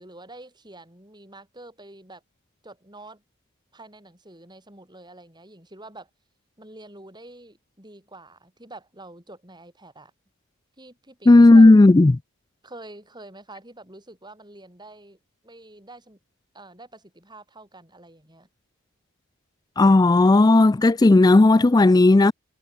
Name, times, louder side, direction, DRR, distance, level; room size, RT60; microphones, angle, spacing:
voice 1, 0.0-2.2 2.6-3.2 3.7-6.1 6.6-10.1 10.8-11.7 12.6-15.2 15.4-16.2 16.5-18.5, right 2 dB, 20° right, 7.7 m, -46 dB
voice 2, 11.3-12.2 19.8-22.3, left 2 dB, 15° left, 0.3 m, -13 dB
head